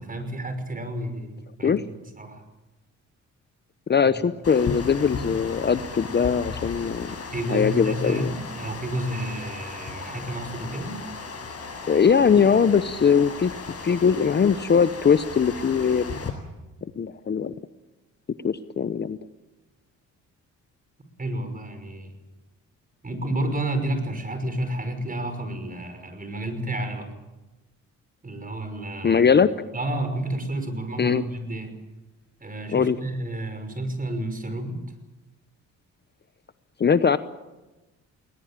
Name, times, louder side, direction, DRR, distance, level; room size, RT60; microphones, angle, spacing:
voice 1, 0.0-1.7 2.1-2.4 7.3-11.0 21.2-22.1 23.0-27.1 28.2-29.2 29.7-31.7 32.4-34.8, right 1 dB, 25° right, 8 dB, 5.7 m, -30 dB
voice 2, 3.9-7.1 7.5-8.3 11.9-13.5 13.8-16.2 17.0-17.5 18.4-19.2 29.0-29.5 31.0-31.2 32.7-33.0 36.8-37.2, left 6 dB, 35° left, 13 dB, 0.8 m, -21 dB
Water, 4.4-16.3, left 4 dB, 50° left, 7.9 m, -36 dB
20.5 x 20.0 x 9.1 m, 1.1 s
cardioid pair, 80°, 31 cm